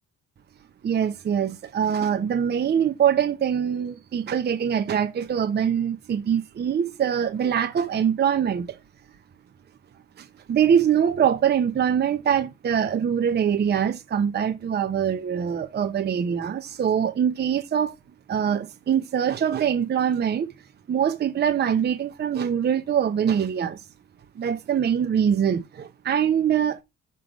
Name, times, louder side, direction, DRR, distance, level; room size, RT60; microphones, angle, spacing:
voice 1, 0.8-8.8 10.2-17.9 18.3-20.5 20.9-23.8 24.4-26.8, right 8 dB, 35° right, 0.6 m, -23 dB
6.1 x 3.4 x 5.1 m
cardioid pair, 120°, 31 cm